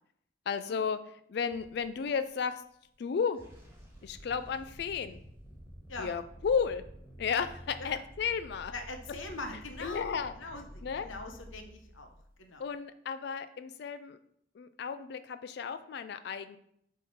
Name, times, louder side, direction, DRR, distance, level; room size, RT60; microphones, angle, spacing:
voice 1, 0.5-1.0 1.3-2.6 3.0-3.4 4.0-5.2 6.0-6.8 7.2-8.7 9.8-10.3 10.8-11.1 12.6-14.2 14.6-16.6, left 6 dB, 55° left, 11 dB, 0.3 m, -33 dB
sound 1, 1.5-2.2 3.2-12.6, equal, 15° right, 1.6 m, -50 dB
voice 2, 8.7-12.6, left 2 dB, 80° left, 5 dB, 1.0 m, -43 dB
9.0 x 3.7 x 4.2 m, 0.72 s
head